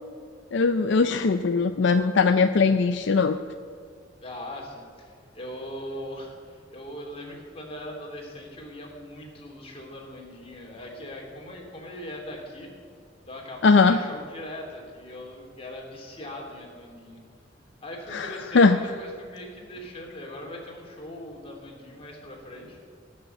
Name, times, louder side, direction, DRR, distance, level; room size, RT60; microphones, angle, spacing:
voice 1, 0.5-3.4 13.6-14.0 18.1-18.8, left 4 dB, 65° left, 9 dB, 0.5 m, -20 dB
voice 2, 4.2-12.7 13.3-17.2 17.8-22.8, left 1 dB, 30° left, -1 dB, 3.0 m, -40 dB
17.0 x 6.7 x 7.9 m, 2.2 s
head